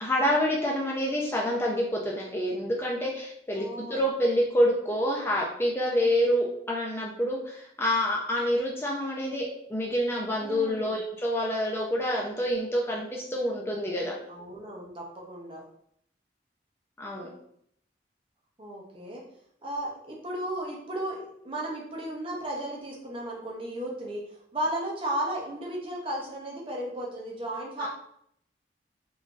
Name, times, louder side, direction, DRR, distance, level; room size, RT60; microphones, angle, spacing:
voice 1, 0.0-14.1 17.0-17.3 27.8-27.9, equal, 15° left, -2 dB, 0.4 m, -27 dB
voice 2, 3.6-4.1 10.4-11.0 14.3-15.6 18.6-19.2 19.6-24.2 24.5-27.9, right 1 dB, 30° right, -2 dB, 0.7 m, -34 dB
3.7 x 2.6 x 2.4 m, 0.70 s
head